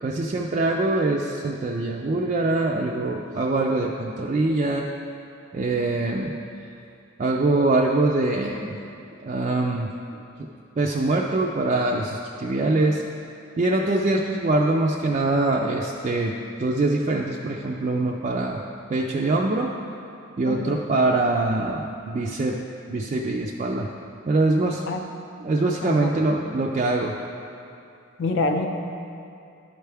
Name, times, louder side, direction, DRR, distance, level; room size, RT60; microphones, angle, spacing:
voice 1, 0.0-4.9 5.5-6.3 7.2-8.8 9.2-9.9 10.4-10.5 10.8-13.0 13.6-18.6 18.9-19.7 20.4-22.6 22.9-23.9 24.3-24.8 25.4-27.2, right 2 dB, 35° right, -1 dB, 0.3 m, -23 dB
voice 2, 20.4-20.8 24.9-25.1 25.8-26.2 28.2-28.7, left 3 dB, 60° left, 4 dB, 0.5 m, -26 dB
11.0 x 4.5 x 3.4 m, 2.6 s
head